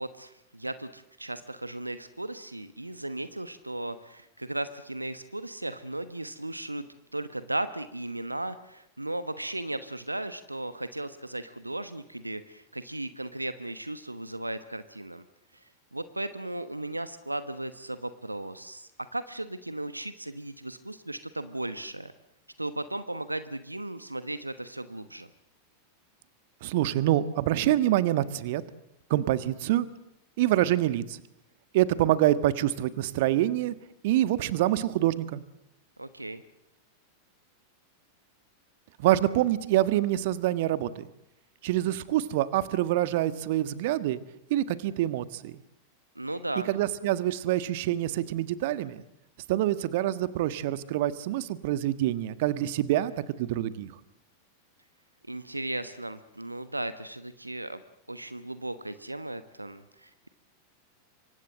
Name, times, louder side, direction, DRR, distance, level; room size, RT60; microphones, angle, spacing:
voice 1, 0.0-6.8 7.1-15.2 15.5-22.1 22.6-25.3 36.0-36.4 46.1-46.7 55.3-57.8 58.1-60.3, right 1 dB, 85° right, 13 dB, 1.1 m, -36 dB
voice 2, 26.6-28.6 29.1-29.9 30.4-31.2 31.7-33.7 34.0-35.4 39.0-41.1 41.6-44.2 44.5-45.6 46.7-49.0 49.5-53.1 53.4-53.9, right 14 dB, 50° right, 14 dB, 1.4 m, -26 dB
27.0 x 24.5 x 7.7 m, 0.83 s
figure-of-eight pair, 90°, 0 cm